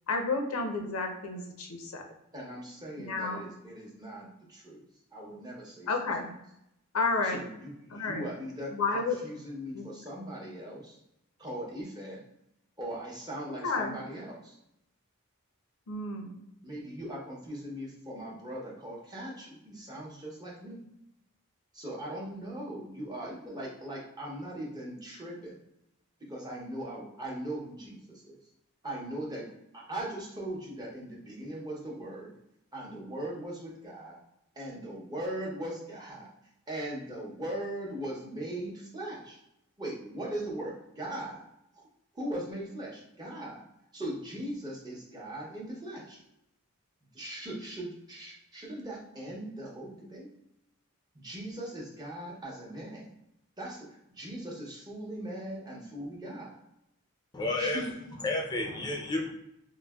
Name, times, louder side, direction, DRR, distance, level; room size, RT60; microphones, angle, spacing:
voice 1, 0.1-2.0 3.0-3.4 5.9-6.3 6.9-7.4 7.9-8.3 8.7-9.2 9.7-9.8 13.6-14.0 15.9-16.4, left 3 dB, 90° left, 4 dB, 0.5 m, -31 dB
voice 2, 2.3-4.8 5.1-5.9 7.2-11.0 11.4-12.2 12.8-14.6 16.6-20.8 21.7-25.6 26.3-28.3 28.8-29.5 29.7-32.3 32.7-34.2 34.6-36.3 36.7-39.4 39.8-41.4 41.8-41.9 42.1-43.6 43.9-46.2 47.1-50.3 51.1-53.1 53.6-53.9 54.2-56.6 57.6-57.9, right 1 dB, 20° right, -4 dB, 0.7 m, -39 dB
voice 3, 57.3-57.9 58.2-59.3, left 2 dB, 20° left, 1 dB, 0.4 m, -31 dB
3.7 x 2.1 x 2.2 m, 0.82 s
head